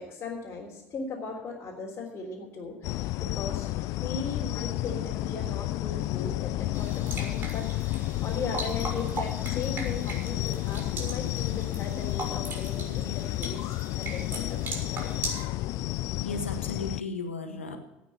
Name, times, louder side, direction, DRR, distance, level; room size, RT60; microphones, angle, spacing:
voice 1, 0.0-15.1 15.7-15.9, left 4 dB, 35° left, -4 dB, 3.6 m, -38 dB
sound 1, 2.8-17.0, left 17 dB, 55° left, 0.4 m, -31 dB
sound 2, 6.7-15.4, right 2 dB, 30° right, 5.6 m, -39 dB
voice 2, 16.2-17.8, left 3 dB, 85° left, 5 dB, 1.7 m, -35 dB
17.5 x 6.1 x 7.9 m, 1.0 s
figure-of-eight pair, 65°, 7 cm